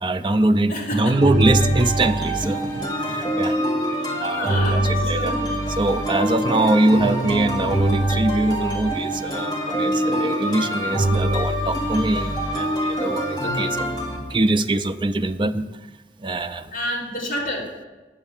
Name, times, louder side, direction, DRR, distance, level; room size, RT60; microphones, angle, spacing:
voice 1, 0.0-3.6 4.2-5.4 5.8-13.9 14.3-15.7 16.2-16.7, right 2 dB, 30° right, 8 dB, 0.5 m, -23 dB
voice 2, 0.7-1.2 3.9-5.5 16.7-17.7, left 1 dB, 45° left, -4 dB, 3.4 m, -30 dB
sound 1, 1.2-14.2, right 1 dB, 25° left, 2.3 m, -24 dB
9.9 x 7.4 x 7.2 m, 1.2 s
head